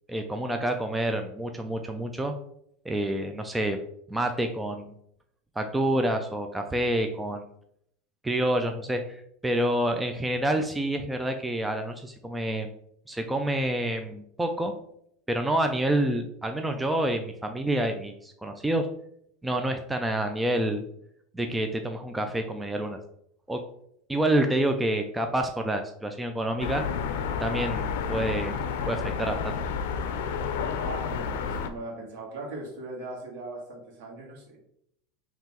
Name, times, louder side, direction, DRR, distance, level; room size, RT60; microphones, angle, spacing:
voice 1, 0.1-2.3 2.9-3.8 4.1-4.9 5.6-7.4 8.2-12.7 13.1-14.7 15.3-18.9 19.4-20.8 21.3-23.0 23.5-23.6 24.1-26.8 27.4-28.5 28.9-29.6, right 1 dB, 5° right, 5 dB, 0.3 m, -28 dB
sound 1, 26.6-31.7, left 6 dB, 80° left, 0.4 m, -30 dB
voice 2, 30.7-34.6, right 2 dB, 70° right, -1 dB, 1.5 m, -39 dB
5.5 x 2.9 x 2.9 m, 0.71 s
supercardioid pair, 150°, 0 cm